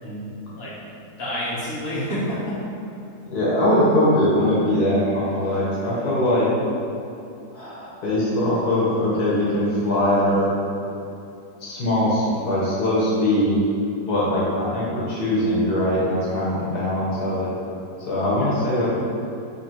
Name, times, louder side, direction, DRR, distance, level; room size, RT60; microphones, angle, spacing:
voice 1, 0.0-0.7 1.1-2.4 18.3-18.5, equal, 35° left, -10 dB, 1.3 m, -29 dB
voice 2, 3.3-6.5 7.5-10.5 11.6-13.6 14.1-17.5 18.0-18.9, left 1 dB, 70° left, -8 dB, 1.5 m, -21 dB
4.2 x 2.7 x 4.3 m, 2.6 s
omnidirectional pair, 1.8 m